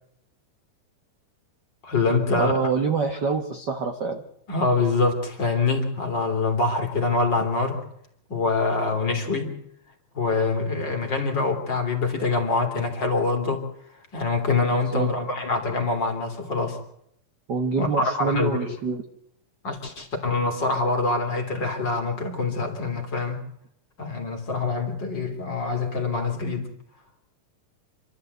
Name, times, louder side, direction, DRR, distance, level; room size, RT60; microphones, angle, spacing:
voice 1, 1.8-2.5 4.5-7.8 8.3-9.6 10.1-13.7 14.1-16.8 17.8-18.8 19.6-23.4 24.0-26.7, left 3 dB, 35° left, 4 dB, 3.0 m, -25 dB
voice 2, 2.4-4.2 14.7-15.1 17.5-19.0, right 5 dB, 55° right, 5 dB, 1.2 m, -26 dB
27.5 x 12.5 x 8.1 m, 0.74 s
omnidirectional pair, 3.9 m